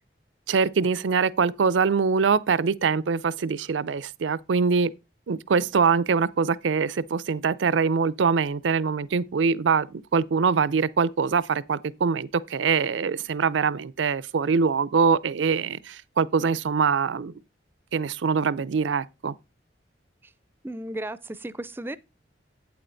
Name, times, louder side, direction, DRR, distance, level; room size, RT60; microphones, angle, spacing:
voice 1, 0.5-4.9 5.3-17.3 17.9-19.3, right 5 dB, 90° right, 0.5 m, -23 dB
voice 2, 20.6-22.0, right 1 dB, 10° right, 0.4 m, -34 dB
8.7 x 7.7 x 3.9 m
head